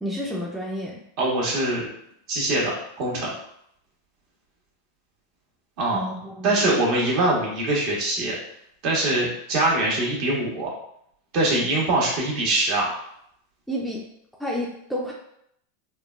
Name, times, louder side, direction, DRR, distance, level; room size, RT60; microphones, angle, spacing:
voice 1, 0.0-1.0 5.9-6.7 13.7-14.0 14.4-15.1, equal, ahead, -3 dB, 0.5 m, -30 dB
voice 2, 1.2-1.9 2.3-2.7 3.0-3.3 5.8-6.0 6.4-8.3 8.8-10.7 11.3-12.9, right 2 dB, 55° right, -4 dB, 1.2 m, -23 dB
3.6 x 2.2 x 2.3 m, 0.71 s
supercardioid pair, 125°, 0 cm